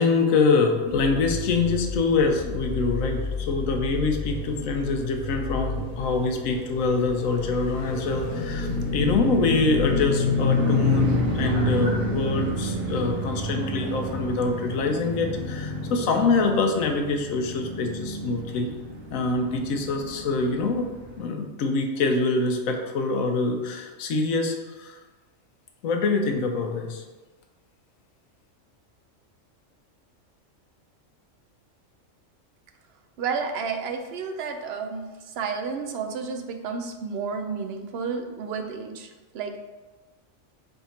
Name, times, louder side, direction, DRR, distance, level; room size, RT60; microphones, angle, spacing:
voice 1, 0.0-18.7 19.1-20.9 21.1-25.0 25.8-27.0, left 3 dB, 90° left, 4 dB, 1.0 m, -25 dB
sound 1, 0.9-10.1, left 2 dB, 60° left, 0.4 m, -33 dB
sound 2, 7.9-21.2, left 2 dB, 85° right, 1.7 m, -28 dB
voice 2, 33.2-35.0 35.4-39.1 39.3-39.6, right 5 dB, 65° right, 5 dB, 0.7 m, -31 dB
3.5 x 3.5 x 4.1 m, 1.3 s
omnidirectional pair, 1.4 m